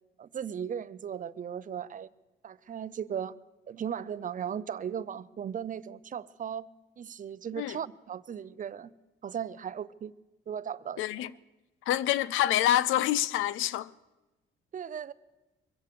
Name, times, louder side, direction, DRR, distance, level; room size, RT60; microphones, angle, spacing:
voice 1, 0.2-2.1 2.4-3.4 3.7-6.7 7.0-8.9 9.2-10.1 10.5-11.0 14.7-15.1, right 8 dB, 40° right, 0.6 m, -37 dB
voice 2, 11.0-11.3 11.9-13.9, left 12 dB, 85° left, 0.5 m, -27 dB
23.0 x 8.2 x 6.8 m
cardioid pair, 90°, 20 cm